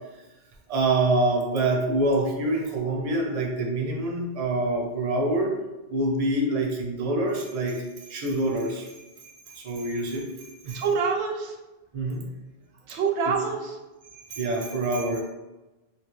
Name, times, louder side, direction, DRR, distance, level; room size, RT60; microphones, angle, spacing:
voice 1, 0.7-5.5 5.9-10.2 10.6-10.8 11.9-12.2 13.2-13.3 14.1-15.2, right 2 dB, 45° right, 0 dB, 0.5 m, -26 dB
voice 2, 10.7-11.6 12.9-13.8, right 5 dB, 85° right, 2 dB, 0.9 m, -26 dB
2.8 x 2.3 x 3.1 m, 1.1 s
omnidirectional pair, 1.1 m